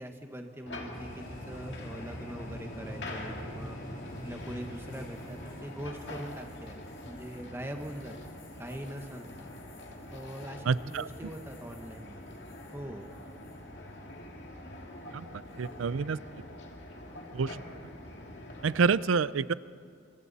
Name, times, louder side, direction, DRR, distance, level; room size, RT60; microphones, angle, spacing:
voice 1, 0.0-3.8 4.2-8.1 8.6-9.3 10.1-12.4 12.7-13.1, equal, 10° right, 4 dB, 1.3 m, -42 dB
sound 1, 0.7-18.9, left 1 dB, 60° left, 2.4 m, -45 dB
sound 2, 0.9-12.8 13.1-13.5 15.5-15.8, equal, 45° left, 3.9 m, -47 dB
voice 2, 10.7-11.1 15.1-15.2 15.6-16.2 17.3-17.6 18.6-19.5, right 5 dB, 85° right, 18 dB, 0.5 m, -27 dB
27.0 x 24.5 x 4.2 m, 2.3 s
head